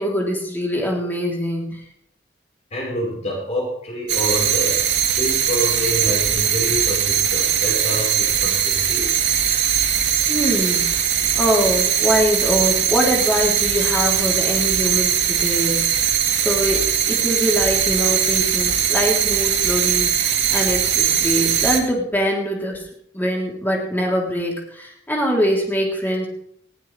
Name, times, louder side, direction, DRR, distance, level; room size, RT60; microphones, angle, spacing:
voice 1, 0.0-1.7 10.3-11.0 11.3-15.9 16.4-22.9 23.1-26.3, equal, 10° left, -2 dB, 3.5 m, -23 dB
voice 2, 2.7-4.8 5.1-9.1, equal, 40° left, -3 dB, 4.8 m, -27 dB
sound 1, 4.1-21.8, right 9 dB, 85° right, 2.3 m, -20 dB
20.0 x 16.0 x 3.4 m, 0.73 s
head